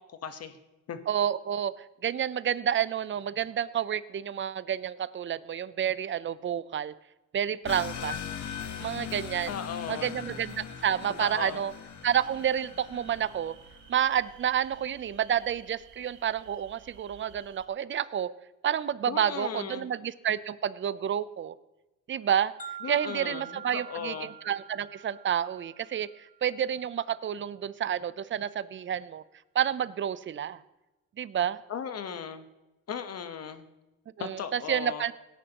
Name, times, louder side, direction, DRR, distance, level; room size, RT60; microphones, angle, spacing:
voice 1, 0.1-0.6 0.9-1.0 9.5-10.3 11.2-11.6 19.1-19.9 22.8-24.3 31.7-32.4 32.9-33.6 34.2-35.0, left 7 dB, 55° left, 9 dB, 1.2 m, -37 dB
voice 2, 1.1-1.7 2.0-6.9 7.3-8.2 8.8-9.6 9.9-11.7 12.0-13.5 13.9-18.3 18.6-21.5 22.1-22.5 22.9-29.2 29.5-30.6 31.2-31.6 34.2-35.1, right 9 dB, 40° right, 17 dB, 0.6 m, -29 dB
sound 1, 7.7-13.9, left 8 dB, 70° left, 1.3 m, -40 dB
sound 2, 12.0-17.7, right 8 dB, 80° right, 1.2 m, -55 dB
sound 3, 22.6-26.6, right 8 dB, 25° left, 1.4 m, -45 dB
17.5 x 10.0 x 2.9 m, 1.0 s
cardioid pair, 90°, 30 cm